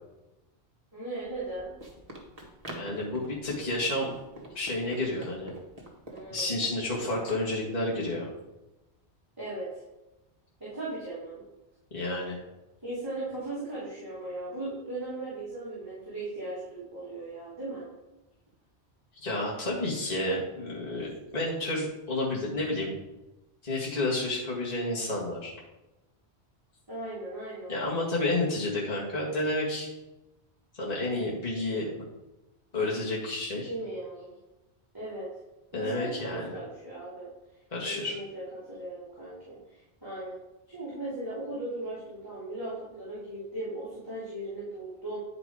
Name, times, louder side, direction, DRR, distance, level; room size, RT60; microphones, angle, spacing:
voice 1, 0.9-1.7 6.1-6.5 9.4-9.8 10.6-11.4 12.8-17.9 26.9-27.7 33.7-34.3 34.9-35.3 35.7-37.3 37.8-40.4 40.7-45.2, right 2 dB, 20° right, -10 dB, 3.0 m, -38 dB
Run, 1.2-7.4, right 1 dB, 35° right, 1.7 m, -46 dB
voice 2, 2.8-4.1 4.5-5.5 6.3-8.3 11.9-12.4 19.2-22.9 23.6-25.5 27.7-29.9 30.8-31.9 32.7-33.7 35.7-36.6 37.7-38.1, left 2 dB, 35° left, -5 dB, 2.0 m, -30 dB
9.9 x 4.9 x 4.9 m, 1.0 s
omnidirectional pair, 1.1 m